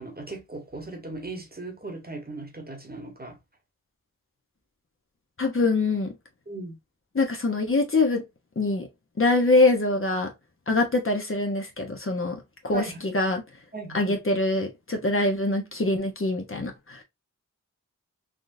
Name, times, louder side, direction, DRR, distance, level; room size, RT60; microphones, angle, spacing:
voice 1, 0.0-3.3 6.5-6.8 12.7-13.0 13.7-14.2, right 2 dB, 25° right, 1.2 m, -37 dB
voice 2, 5.4-6.1 7.1-8.2 8.6-8.9 9.2-10.3 10.7-12.4 12.6-13.4 13.9-17.0, left 2 dB, 40° left, 0.9 m, -24 dB
3.6 x 2.3 x 2.6 m
cardioid pair, 45°, 34 cm